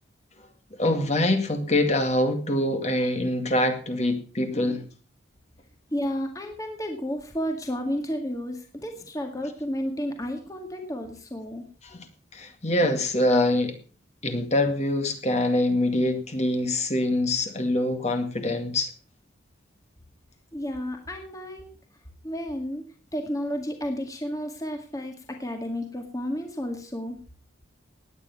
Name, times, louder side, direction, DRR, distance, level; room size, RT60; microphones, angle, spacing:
voice 1, 0.8-4.9 11.8-12.1 12.3-13.8 14.2-18.9, left 1 dB, 35° left, 6 dB, 2.2 m, -24 dB
voice 2, 5.9-11.7 20.5-21.7 22.2-22.8 23.1-27.2, equal, 20° left, 4 dB, 2.0 m, -32 dB
18.0 x 9.7 x 5.8 m, 0.38 s
head